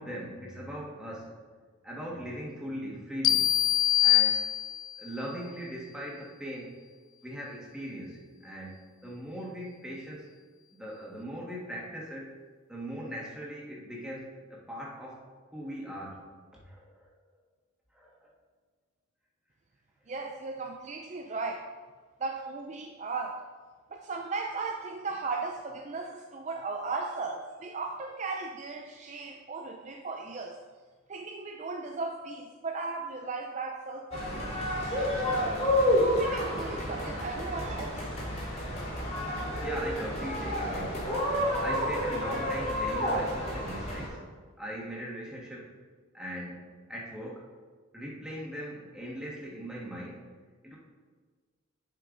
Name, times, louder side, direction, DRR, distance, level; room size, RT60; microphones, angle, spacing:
voice 1, 0.0-1.4 1.8-3.7 4.0-4.4 5.0-6.8 7.2-10.3 10.7-12.4 12.7-15.2 15.5-16.2 16.5-17.1 17.9-18.2 39.6-41.1 41.6-45.7 46.1-47.5 47.9-50.2 50.6-50.8, equal, 5° right, -5 dB, 1.6 m, -40 dB
sound 1, 3.2-5.1, left 13 dB, 85° left, 0.5 m, -24 dB
voice 2, 20.1-21.7 22.2-23.4 23.9-30.6 31.1-34.5 34.8-35.5 35.9-38.0, right 3 dB, 35° right, 3 dB, 0.4 m, -36 dB
sound 2, 34.1-44.1, equal, 30° left, 2.4 m, -30 dB
10.5 x 5.7 x 3.9 m, 1.5 s
head